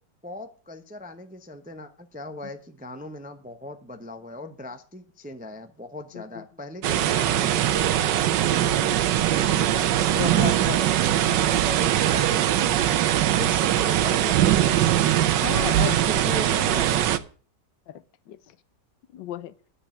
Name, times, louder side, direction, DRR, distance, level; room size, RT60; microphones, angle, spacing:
voice 1, 0.2-9.0 9.3-15.4 15.8-17.2, left 2 dB, 10° right, 0.4 m, -39 dB
voice 2, 6.1-6.4 10.1-10.8 15.4-16.0 17.9-18.4 19.1-19.5, left 11 dB, 85° left, 1.5 m, -33 dB
sound 1, 6.8-17.2, right 12 dB, 80° right, 1.4 m, -21 dB
9.8 x 6.8 x 9.0 m
omnidirectional pair, 1.9 m